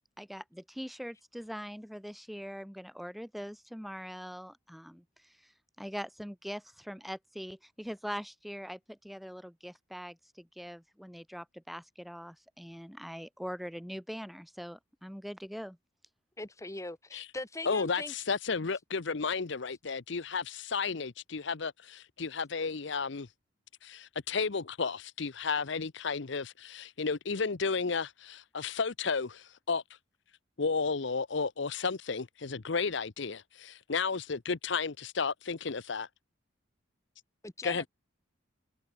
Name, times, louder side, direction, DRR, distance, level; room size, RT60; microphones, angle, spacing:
voice 1, 0.2-5.5 5.8-15.8, equal, ahead, 2.3 m, -42 dB
voice 2, 16.4-18.1 37.4-37.9, left 2 dB, 15° left, 0.9 m, -40 dB
voice 3, 17.7-23.3 23.8-29.8 30.6-36.1 37.6-37.9, left 5 dB, 60° left, 0.7 m, -33 dB
head